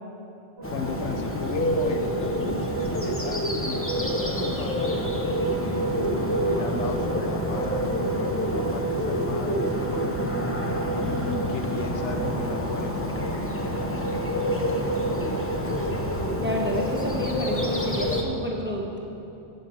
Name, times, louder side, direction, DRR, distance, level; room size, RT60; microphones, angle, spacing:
Bird, 0.6-18.2, equal, 10° left, 0.9 m, -28 dB
sound 1, 0.6-17.0, right 4 dB, 25° right, 0.8 m, -34 dB
voice 1, 0.7-5.3 5.6-10.3 11.0-14.2, left 5 dB, 75° left, 6 dB, 1.0 m, -37 dB
voice 2, 16.4-19.0, left 1 dB, 10° right, -1 dB, 1.3 m, -29 dB
10.5 x 7.5 x 7.8 m, 2.9 s
omnidirectional pair, 1.2 m